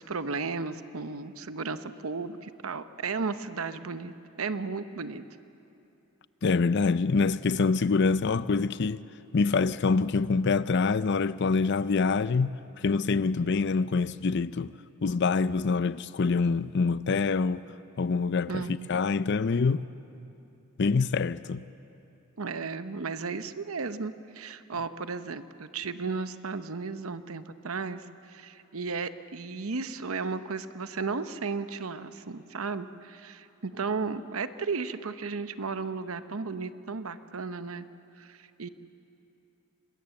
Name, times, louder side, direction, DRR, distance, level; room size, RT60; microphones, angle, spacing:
voice 1, 0.0-5.2 18.5-18.9 22.4-37.9 38.2-38.7, right 4 dB, 85° right, 0.9 m, -34 dB
voice 2, 6.4-9.0 9.3-12.5 12.8-14.7 15.0-17.6 18.0-19.9 20.8-21.6, left 4 dB, 55° left, 0.5 m, -25 dB
26.5 x 20.5 x 7.7 m
head